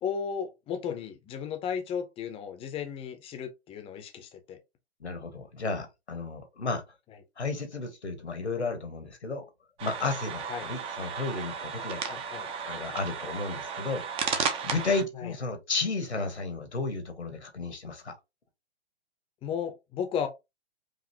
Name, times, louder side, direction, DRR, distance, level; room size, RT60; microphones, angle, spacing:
voice 1, 0.0-4.6 10.5-10.7 12.0-12.5 15.2-15.3 19.4-20.3, left 7 dB, 15° left, 0.8 m, -34 dB
voice 2, 5.0-6.8 7.4-9.5 9.8-12.0 12.6-18.1, left 3 dB, 80° left, 1.5 m, -33 dB
sound 1, 9.8-15.0, right 6 dB, 15° right, 0.7 m, -34 dB
5.1 x 2.8 x 2.9 m
figure-of-eight pair, 120°, 33 cm